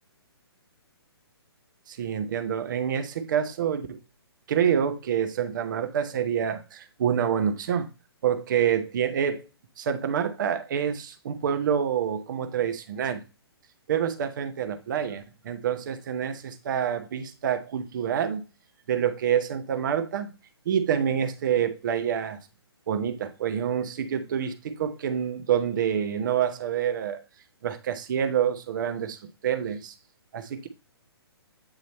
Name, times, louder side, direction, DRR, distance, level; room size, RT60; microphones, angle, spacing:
voice 1, 1.9-4.0 4.5-7.9 8.2-9.5 9.8-13.2 13.9-18.4 18.9-20.3 20.7-22.4 22.9-27.2 27.6-29.2 29.4-29.9 30.3-30.7, right 8 dB, 50° right, 0.9 m, -27 dB
8.8 x 3.0 x 4.1 m
figure-of-eight pair, 130°, 14 cm